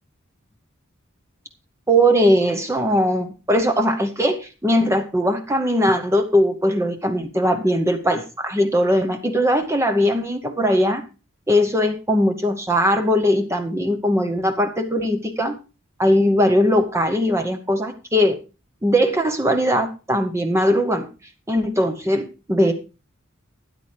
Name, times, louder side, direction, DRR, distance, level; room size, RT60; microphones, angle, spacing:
voice 1, 1.9-11.0 11.5-15.5 16.0-18.4 18.8-21.1 21.5-22.7, equal, 15° right, 7 dB, 0.8 m, -20 dB
13.0 x 9.6 x 3.3 m, 0.31 s
head